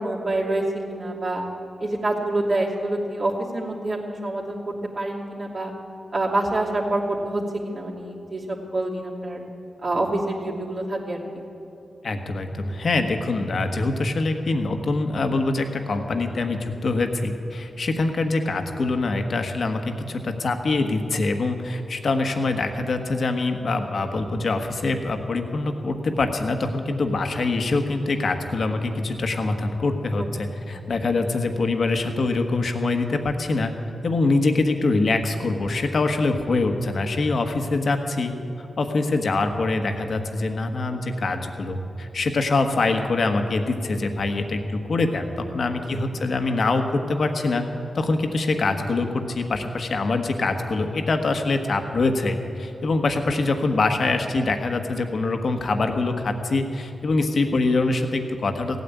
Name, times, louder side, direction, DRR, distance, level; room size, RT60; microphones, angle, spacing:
voice 1, 0.0-1.4 1.8-5.7 6.1-9.4 9.8-11.2 30.2-31.0 46.1-46.3, right 2 dB, 50° right, -2 dB, 2.9 m, -27 dB
voice 2, 12.0-33.7 34.0-47.6 47.9-58.8, left 3 dB, 65° left, 6 dB, 1.4 m, -24 dB
16.5 x 9.3 x 8.5 m, 3.0 s
cardioid pair, 50°, 0 cm